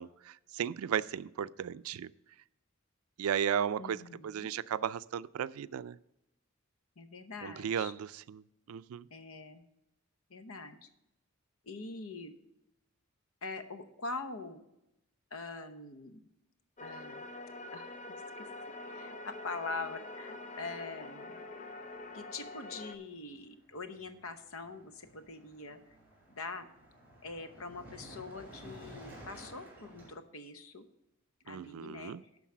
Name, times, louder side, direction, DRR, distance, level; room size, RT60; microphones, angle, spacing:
voice 1, 0.0-2.1 3.2-4.0 4.2-6.0 7.4-8.4 8.7-9.0 31.5-32.2, right 8 dB, 90° right, 17 dB, 0.3 m, -35 dB
voice 2, 3.8-4.5 7.0-7.9 9.1-9.6 10.3-10.9 11.6-12.3 13.4-14.6 15.3-16.2 16.8-17.2 17.7-18.5 18.8-21.4 22.1-25.8 26.3-26.7 27.2-30.8 31.5-32.2, left 3 dB, 75° left, 9 dB, 0.9 m, -43 dB
sound 1, 16.8-23.0, left 2 dB, 35° left, 0.7 m, -45 dB
Car passing by, 22.6-22.9 23.1-30.1, equal, 10° right, 2.7 m, -53 dB
11.5 x 4.0 x 7.3 m, 0.86 s
head